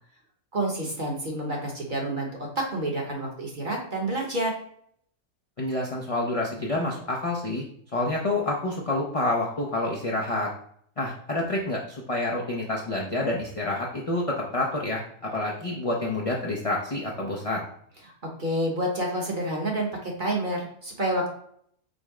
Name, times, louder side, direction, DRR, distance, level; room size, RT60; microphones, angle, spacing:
voice 1, 0.5-2.3 2.6-4.5 18.2-21.3, right 1 dB, 40° right, -1 dB, 0.9 m, -28 dB
voice 2, 5.6-7.6 7.9-10.5 11.0-17.7, left 2 dB, 55° left, -3 dB, 0.3 m, -28 dB
5.2 x 2.1 x 4.7 m, 0.65 s
omnidirectional pair, 1.6 m